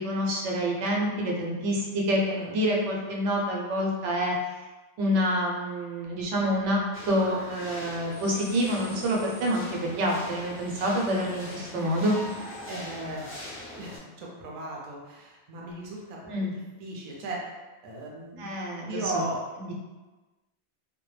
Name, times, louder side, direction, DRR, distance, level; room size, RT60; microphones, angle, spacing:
voice 1, 0.0-4.3 5.0-6.8 7.1-12.2 16.3-16.5 18.4-19.2 19.6-19.7, equal, 90° right, -1 dB, 0.9 m, -27 dB
sound 1, 6.9-14.0, left 1 dB, 15° left, 0.4 m, -41 dB
voice 2, 12.7-13.4 13.8-17.6 17.8-18.5 18.9-19.4, right 1 dB, 50° right, -3 dB, 0.5 m, -37 dB
2.1 x 2.1 x 3.1 m, 1.2 s
omnidirectional pair, 1.2 m